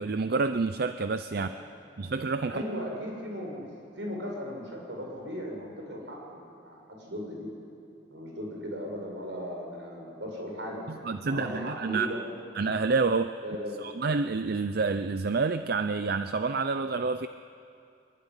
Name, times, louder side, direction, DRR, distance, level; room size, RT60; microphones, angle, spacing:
voice 1, 0.0-1.5 2.0-2.6 10.9-12.1 12.5-13.3 13.8-17.3, right 4 dB, 60° right, 10 dB, 0.6 m, -28 dB
voice 2, 2.5-3.6 4.0-7.5 8.1-10.8 11.3-12.3 13.4-13.8, equal, 85° right, 0 dB, 7.4 m, -37 dB
23.5 x 23.0 x 9.9 m, 2.6 s
head